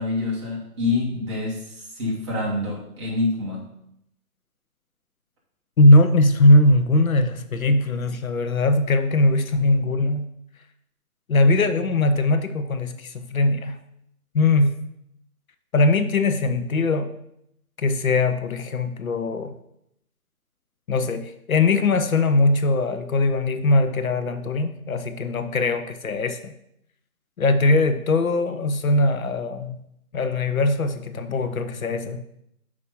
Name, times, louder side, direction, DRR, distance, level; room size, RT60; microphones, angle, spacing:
voice 1, 0.0-3.7, left 3 dB, 20° right, -4 dB, 1.3 m, -26 dB
voice 2, 5.8-10.3 11.3-13.8 14.3-14.7 15.7-17.1 17.8-19.5 20.9-26.5 27.4-29.8 30.1-32.2, left 2 dB, 65° left, 9 dB, 0.8 m, -20 dB
5.9 x 4.9 x 5.4 m, 0.77 s
hypercardioid pair, 160°, 46 cm